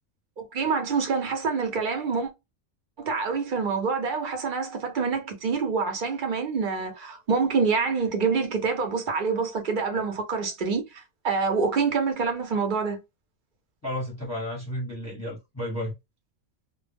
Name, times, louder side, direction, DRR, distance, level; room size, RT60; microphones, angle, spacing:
voice 1, 0.4-2.3 3.0-13.0, right 5 dB, 50° right, 0.7 m, -26 dB
voice 2, 13.8-15.9, left 1 dB, 15° left, 0.8 m, -32 dB
2.1 x 2.1 x 3.3 m
omnidirectional pair, 1.3 m